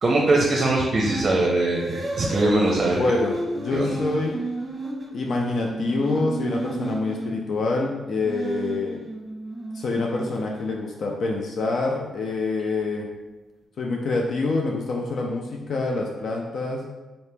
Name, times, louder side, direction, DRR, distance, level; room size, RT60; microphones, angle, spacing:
voice 1, 0.0-3.0 3.7-3.9, right 2 dB, 40° right, -1 dB, 0.6 m, -21 dB
sound 1, 0.8-1.3 1.7-7.4 8.1-11.0, right 2 dB, 20° right, 1.0 m, -32 dB
voice 2, 3.0-4.4 5.1-9.0 9.7-13.1 13.8-16.8, left 3 dB, 65° left, 0 dB, 0.4 m, -26 dB
4.0 x 2.8 x 3.3 m, 1.2 s
cardioid pair, 95°, 0 cm